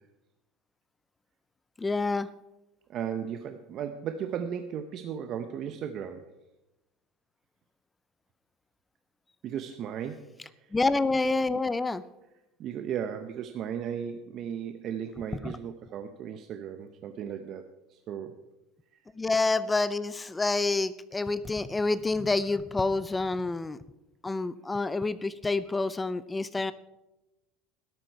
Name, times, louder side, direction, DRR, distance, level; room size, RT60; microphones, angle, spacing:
voice 1, 1.8-2.3 10.7-12.0 15.4-15.5 19.2-23.8 24.2-26.7, left 3 dB, 10° left, 16 dB, 0.4 m, -28 dB
voice 2, 2.9-6.3 9.4-10.7 12.6-17.6 17.9-18.3, right 8 dB, 40° right, 8 dB, 0.7 m, -36 dB
12.5 x 12.0 x 4.6 m, 0.97 s
cardioid pair, 150°, 0 cm